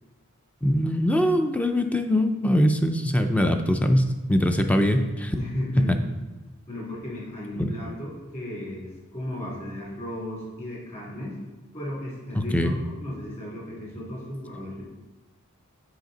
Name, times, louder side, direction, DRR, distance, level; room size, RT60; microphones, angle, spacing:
voice 1, 0.6-5.4 5.7-5.9 7.6-7.7 12.3-12.8, equal, 5° left, 7 dB, 0.4 m, -22 dB
voice 2, 5.3-6.0 6.7-11.3 11.7-14.8, left 1 dB, 30° left, -5 dB, 2.6 m, -35 dB
7.9 x 4.9 x 3.9 m, 1.1 s
head